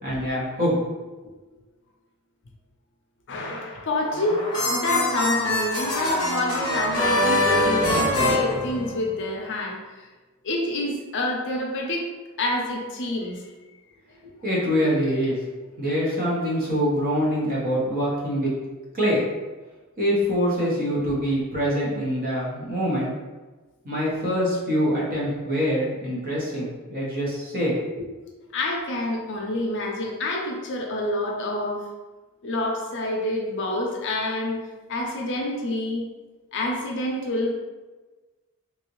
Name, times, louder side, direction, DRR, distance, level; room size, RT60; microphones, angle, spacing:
voice 1, 0.0-0.8 1.2-1.3 14.4-15.4 15.8-18.5 18.9-19.3 20.0-23.1 23.8-27.8, equal, 40° right, -5 dB, 1.0 m, -24 dB
voice 2, 3.3-9.8 10.4-12.0 12.4-13.4 28.5-31.8 32.4-34.6 34.9-36.0 36.5-37.6, left 1 dB, 55° left, 0 dB, 0.6 m, -27 dB
sound 1, 4.0-9.3, left 1 dB, 20° left, 0.9 m, -24 dB
3.3 x 2.7 x 3.0 m, 1.3 s
head